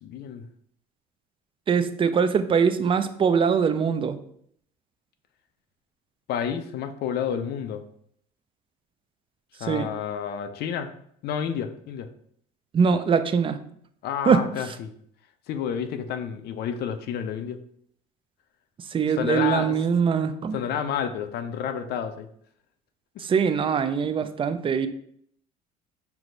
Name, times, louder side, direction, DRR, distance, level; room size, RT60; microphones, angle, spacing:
voice 1, 0.0-0.5 6.3-7.8 9.6-10.9 11.2-12.1 14.0-14.9 15.5-17.6 19.2-19.8 20.5-22.3, left 8 dB, 60° left, 8 dB, 0.5 m, -30 dB
voice 2, 1.7-4.2 9.7-9.9 12.7-13.6 14.3-14.4 18.9-20.6 23.2-24.9, right 6 dB, 25° right, 10 dB, 0.4 m, -22 dB
4.5 x 2.0 x 3.8 m, 0.67 s
supercardioid pair, 75°, 19 cm